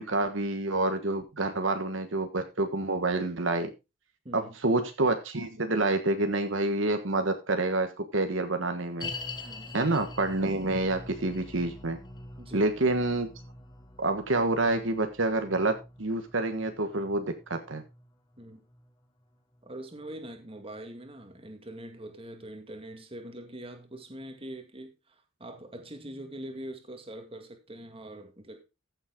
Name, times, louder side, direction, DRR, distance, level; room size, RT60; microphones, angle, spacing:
voice 1, 0.0-3.7 4.3-9.1 9.7-12.0 12.5-13.3 14.0-17.8, right 2 dB, 65° right, 1.4 m, -28 dB
voice 2, 4.2-4.6 9.4-9.8 12.4-12.7 18.4-18.6 19.6-28.6, right 1 dB, 30° right, 2.1 m, -43 dB
sound 1, 9.0-20.3 20.5-20.6 21.3-21.4, left 2 dB, 20° left, 1.4 m, -45 dB
14.5 x 7.3 x 3.8 m
head